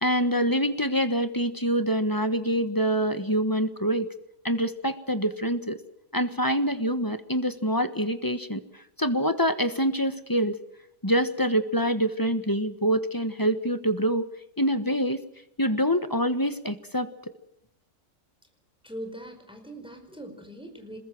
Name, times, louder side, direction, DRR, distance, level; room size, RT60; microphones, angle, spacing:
voice 1, 0.0-4.1 4.4-5.8 6.1-8.6 9.0-10.6 11.0-14.3 14.6-15.2 15.6-17.1, equal, 15° left, 10 dB, 1.2 m, -25 dB
voice 2, 18.8-21.0, right 1 dB, 5° right, 5 dB, 4.8 m, -41 dB
27.0 x 21.5 x 6.2 m, 0.80 s
omnidirectional pair, 1.7 m